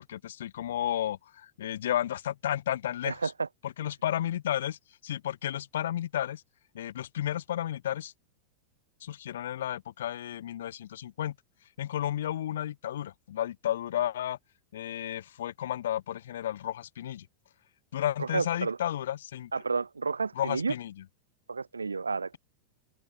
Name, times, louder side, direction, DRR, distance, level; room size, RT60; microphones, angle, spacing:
voice 1, 0.0-3.3 3.6-6.4 6.7-8.1 9.0-11.3 11.8-14.4 14.7-17.3 17.9-19.5 20.3-21.0, left 11 dB, 60° left, 1.0 m, -32 dB
voice 2, 3.0-3.5 18.2-18.8 19.5-20.7 21.5-22.4, right 4 dB, 75° right, 0.4 m, -31 dB
figure-of-eight pair, 90°, 0 cm